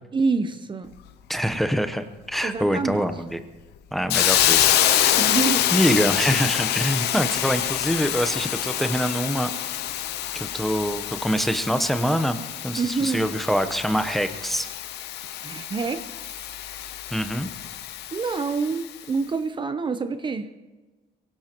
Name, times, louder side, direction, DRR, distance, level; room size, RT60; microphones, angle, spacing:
voice 1, 0.1-0.9 2.4-3.0 5.2-5.7 12.8-13.4 15.4-16.0 18.1-20.5, right 4 dB, 30° right, 9 dB, 0.7 m, -26 dB
voice 2, 1.3-3.4 3.9-5.1 5.7-9.5 10.3-12.4 12.6-14.7 17.1-17.5, equal, ahead, 8 dB, 0.9 m, -25 dB
Hiss, 4.1-18.9, left 12 dB, 80° left, 0.8 m, -26 dB
23.0 x 17.0 x 3.0 m, 1.2 s
cardioid pair, 110°, 17 cm